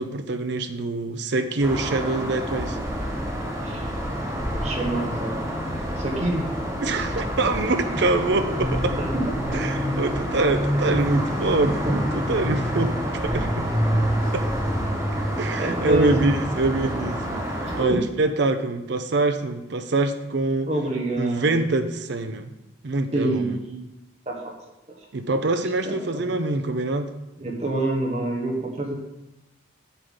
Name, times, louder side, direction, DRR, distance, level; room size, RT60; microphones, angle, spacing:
voice 1, 0.0-2.8 6.8-9.0 9.5-13.7 14.3-14.5 15.4-20.7 21.2-22.5 22.8-23.6 25.1-27.1, right 2 dB, 55° right, 7 dB, 0.5 m, -25 dB
sound 1, 1.6-17.8, equal, 15° right, 3.4 m, -27 dB
voice 2, 4.2-5.4 6.0-6.5 9.0-9.1 15.6-16.3 17.6-18.0 20.7-21.6 23.1-23.8 24.2-24.6 25.8-26.3 27.4-28.9, right 2 dB, 30° right, 0 dB, 1.4 m, -27 dB
8.1 x 8.0 x 3.8 m, 0.96 s
head